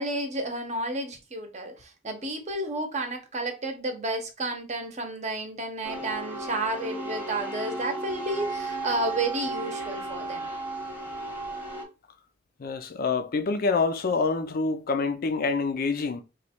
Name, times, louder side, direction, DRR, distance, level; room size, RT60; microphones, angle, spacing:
voice 1, 0.0-10.5, right 2 dB, 35° right, 0.8 m, -31 dB
sound 1, 5.8-11.8, right 2 dB, 10° right, 1.0 m, -34 dB
voice 2, 12.6-16.2, left 4 dB, 50° left, 0.4 m, -26 dB
3.1 x 2.3 x 4.2 m
head